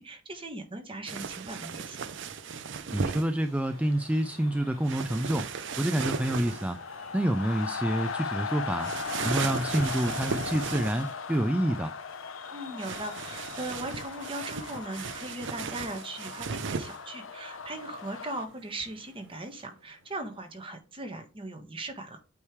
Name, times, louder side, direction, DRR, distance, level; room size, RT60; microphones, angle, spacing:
voice 1, 0.0-2.1 12.5-22.2, right 2 dB, 25° right, 1.3 m, -39 dB
sound 1, 1.1-3.3 4.8-6.7 8.8-11.1 12.8-17.0, right 5 dB, 65° right, 0.5 m, -36 dB
Japan Matsudo Pachinko Short, 1.7-20.8, right 2 dB, 85° right, 2.0 m, -56 dB
voice 2, 2.9-5.5 5.8-6.8 7.1-8.9 9.2-11.9, right 1 dB, 5° right, 0.3 m, -28 dB
sound 2, 3.7-18.5, left 5 dB, 80° left, 0.8 m, -39 dB
8.6 x 3.2 x 4.7 m
head